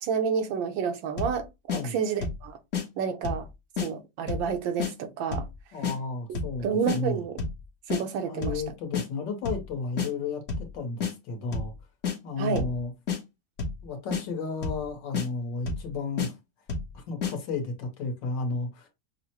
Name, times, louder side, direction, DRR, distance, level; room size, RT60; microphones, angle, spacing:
voice 1, 0.0-1.5 1.7-2.6 3.0-3.5 3.8-5.5 6.3-7.4 7.9-8.6 12.4-12.7, right 6 dB, 80° right, 1.5 m, -29 dB
sound 1, 1.2-1.4 1.7-1.8 2.2-2.4 2.7-2.9 3.2-3.5 3.8-3.9 4.3-4.5 4.8-4.9 5.3-5.5 5.8-6.0 6.4-6.6 6.9-7.0 7.4-7.6 7.9-8.0 8.4-8.6 8.9-9.1 9.5-9.7 10.0-10.1 10.5-10.7 11.0-11.1 11.5-11.7 12.0-12.2 12.6-12.8 13.1-13.2 13.6-13.8 14.1-14.2 14.6-14.9 15.1-15.3 15.7-15.9 16.2-16.3 16.7-16.9 17.2-17.3, left 5 dB, 50° left, 1.0 m, -29 dB
voice 2, 5.7-7.2 8.2-11.7 12.2-12.9 13.8-16.3 16.9-18.9, left 4 dB, 70° left, 1.6 m, -33 dB
5.9 x 2.1 x 2.8 m
omnidirectional pair, 2.1 m